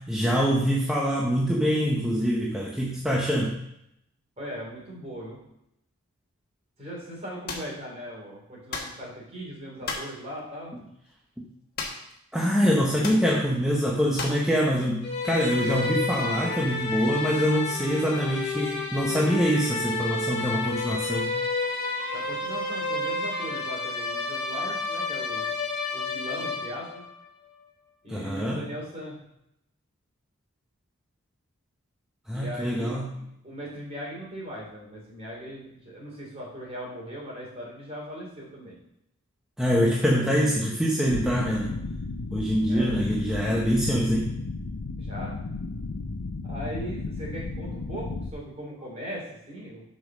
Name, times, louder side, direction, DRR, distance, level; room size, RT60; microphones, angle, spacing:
voice 1, 0.0-3.6 11.4-11.5 12.3-21.4 28.1-28.7 32.3-33.2 39.6-41.8 42.3-44.3, equal, 5° right, -3 dB, 0.8 m, -25 dB
voice 2, 4.4-5.4 6.8-10.7 22.1-25.5 25.9-27.0 28.0-29.2 32.3-38.8 42.7-42.9 45.0-45.4 46.4-49.8, equal, 30° right, -3 dB, 3.5 m, -39 dB
sound 1, 7.5-7.7 8.7-9.0 9.8-10.1 11.8-12.2 12.4-12.5 13.0-13.3 14.2-14.5, left 4 dB, 45° left, 1.4 m, -34 dB
sound 2, 15.0-27.1, left 3 dB, 25° left, 2.6 m, -30 dB
sound 3, 41.1-48.3, left 3 dB, 90° left, 0.7 m, -34 dB
7.9 x 5.3 x 6.1 m, 0.79 s
head